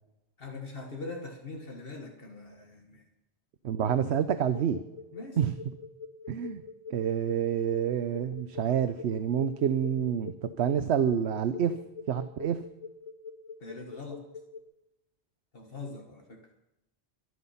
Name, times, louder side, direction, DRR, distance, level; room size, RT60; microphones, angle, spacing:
voice 1, 0.4-3.1 5.1-5.4 9.9-10.0 13.6-14.2 15.5-16.5, left 3 dB, 60° left, 2 dB, 1.8 m, -42 dB
voice 2, 3.6-4.8 5.4-5.5 6.3-6.6 6.9-11.7 12.1-12.6, right 8 dB, 80° right, 11 dB, 1.0 m, -28 dB
sound 1, 3.9-14.6, left 5 dB, 35° left, 0.9 m, -44 dB
23.5 x 9.6 x 5.7 m, 0.93 s
omnidirectional pair, 1.1 m